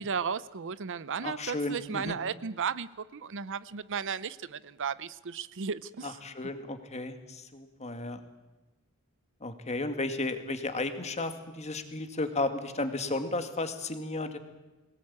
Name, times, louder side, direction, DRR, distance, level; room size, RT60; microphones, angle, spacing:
voice 1, 0.0-6.1, right 6 dB, 60° right, 17 dB, 0.6 m, -35 dB
voice 2, 1.2-2.2 6.0-8.2 9.4-14.4, left 2 dB, 30° left, 8 dB, 2.0 m, -34 dB
22.0 x 19.0 x 8.6 m, 1.1 s
head